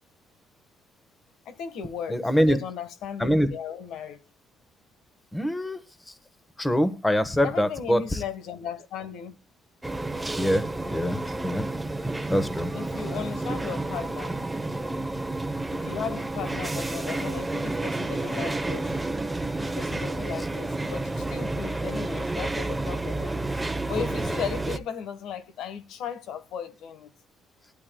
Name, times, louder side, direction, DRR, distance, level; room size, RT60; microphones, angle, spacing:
voice 1, 1.4-4.2 7.4-9.3 12.7-14.3 15.7-18.9 19.6-23.3 23.9-27.1, left 7 dB, 70° left, 1.4 m, -36 dB
voice 2, 2.1-2.6 3.2-3.5 5.3-5.8 6.6-8.2 10.4-11.6 12.3-12.7, equal, 10° left, 1.2 m, -24 dB
sound 1, 9.8-24.8, right 2 dB, 10° right, 0.9 m, -30 dB
20.0 x 12.0 x 2.3 m
cardioid pair, 140°, 0 cm